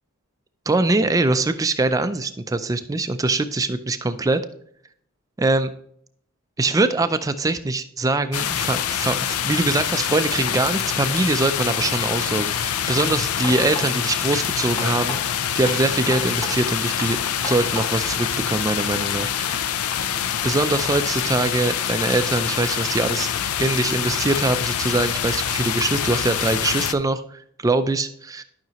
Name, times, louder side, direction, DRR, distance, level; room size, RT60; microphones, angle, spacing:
voice 1, 0.7-4.4 5.4-5.7 6.6-15.2 15.5-17.2 17.4-19.7 20.4-23.3 23.6-28.4, right 2 dB, 15° right, 10 dB, 0.4 m, -23 dB
sound 1, 8.3-26.9, left 9 dB, 85° left, 0.5 m, -25 dB
sound 2, 13.0-13.8 14.3-15.2 15.7-16.5 17.0-17.8 18.3-18.4, left 1 dB, 25° left, 2.1 m, -33 dB
12.0 x 5.8 x 2.9 m, 0.65 s
head